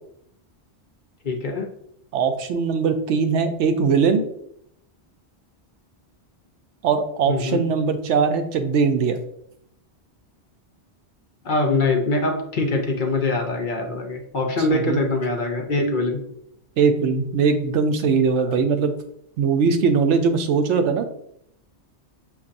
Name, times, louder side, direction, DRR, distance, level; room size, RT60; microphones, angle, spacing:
voice 1, 1.2-1.7 7.3-7.7 11.4-16.2, left 2 dB, 50° left, 2 dB, 0.8 m, -23 dB
voice 2, 2.1-4.2 6.8-9.2 14.7-15.0 16.8-19.0 19.4-21.1, right 5 dB, 85° right, 7 dB, 0.9 m, -20 dB
6.8 x 2.6 x 2.5 m, 0.72 s
omnidirectional pair, 1.2 m